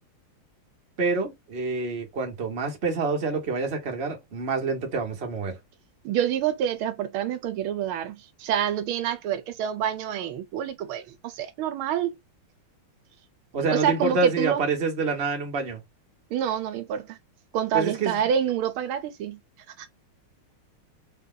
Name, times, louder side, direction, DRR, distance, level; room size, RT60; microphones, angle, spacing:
voice 1, 1.0-5.6 13.5-15.8 17.7-18.2, right 4 dB, 35° right, 1.4 m, -27 dB
voice 2, 6.0-12.2 13.7-14.6 16.3-17.2 17.5-19.4 19.8-19.9, right 9 dB, 80° right, 1.5 m, -27 dB
4.2 x 2.7 x 3.7 m
omnidirectional pair, 2.3 m